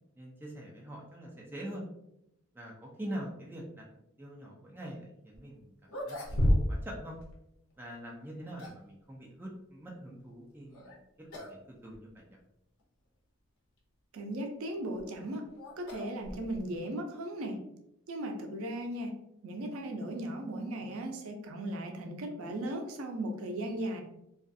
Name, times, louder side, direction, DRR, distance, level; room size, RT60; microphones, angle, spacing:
voice 1, 0.2-1.8 2.5-3.8 4.2-7.2 7.8-12.4, right 1 dB, 10° right, -3 dB, 0.4 m, -44 dB
sound 1, 5.3-5.4 5.8-7.0 7.2-7.3 8.2-8.9 10.7-11.0 11.3-11.6 11.9-12.0 12.8-12.9 14.7-16.8, equal, 70° left, 0.6 m, -32 dB
voice 2, 14.1-15.5 15.8-17.6 18.1-19.1 19.4-24.0, right 1 dB, 75° right, 3 dB, 0.4 m, -37 dB
2.3 x 2.3 x 2.6 m, 0.82 s
head